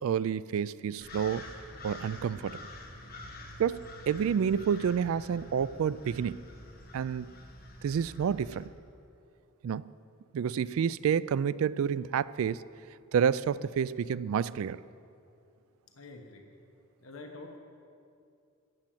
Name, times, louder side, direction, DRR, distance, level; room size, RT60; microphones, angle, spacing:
voice 1, 0.0-1.5 1.8-2.6 3.6-6.4 6.9-7.3 7.8-8.7 9.6-9.9 10.3-12.6 13.1-14.8, right 7 dB, 65° right, 18 dB, 0.3 m, -29 dB
sound 1, 1.0-8.7, left 1 dB, 40° left, 1.5 m, -47 dB
voice 2, 16.0-16.5 17.0-17.6, left 3 dB, 65° left, 3 dB, 1.1 m, -46 dB
14.5 x 7.4 x 9.1 m, 2.5 s
head